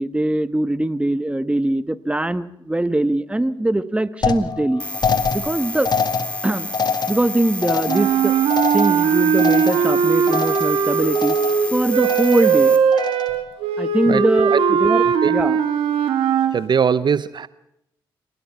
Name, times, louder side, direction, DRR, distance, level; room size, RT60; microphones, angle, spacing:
voice 1, 0.0-4.8 5.3-5.9 6.4-6.7 7.1-8.3 8.7-11.4 11.7-12.8 13.8-15.6, right 1 dB, 10° right, 14 dB, 1.3 m, -22 dB
sound 1, 4.2-10.0 10.3-10.8 11.1-11.7 12.0-12.6 12.9-13.5, left 5 dB, 50° left, 1.9 m, -26 dB
sound 2, 4.8-12.8, left 1 dB, 15° left, 4.2 m, -31 dB
sound 3, 7.9-16.6, right 7 dB, 80° right, 1.7 m, -19 dB
voice 2, 16.5-17.5, right 7 dB, 55° right, 16 dB, 0.7 m, -20 dB
26.0 x 18.5 x 5.9 m, 0.79 s
supercardioid pair, 45°, 9 cm